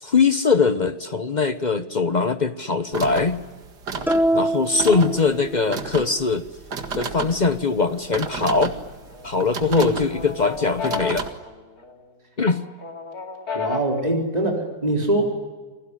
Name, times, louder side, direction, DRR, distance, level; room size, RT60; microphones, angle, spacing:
voice 1, 0.0-3.4 4.3-6.4 7.0-8.7 9.2-11.3 12.4-12.6, left 4 dB, 35° left, 11 dB, 0.7 m, -21 dB
sound 1, 2.9-11.3, right 4 dB, 60° right, 2.5 m, -33 dB
sound 2, 4.1-5.9, right 1 dB, 5° right, 0.3 m, -24 dB
sound 3, 8.8-9.4 9.8-12.1 12.5-14.1, left 5 dB, 55° left, 3.0 m, -32 dB
voice 2, 13.5-15.2, right 1 dB, 20° right, 1 dB, 4.3 m, -23 dB
29.0 x 21.0 x 9.9 m, 1.4 s
omnidirectional pair, 2.0 m